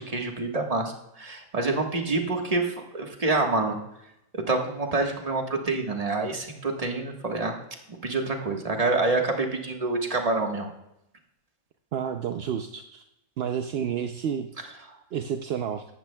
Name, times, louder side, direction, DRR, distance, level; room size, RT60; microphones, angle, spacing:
voice 1, 0.0-3.8 4.3-7.6 7.9-10.7, right 3 dB, 25° right, 2 dB, 1.4 m, -27 dB
voice 2, 11.9-13.0 13.4-14.5 15.1-15.9, right 8 dB, 60° right, 6 dB, 0.6 m, -30 dB
16.5 x 12.0 x 2.2 m, 0.84 s
omnidirectional pair, 1.5 m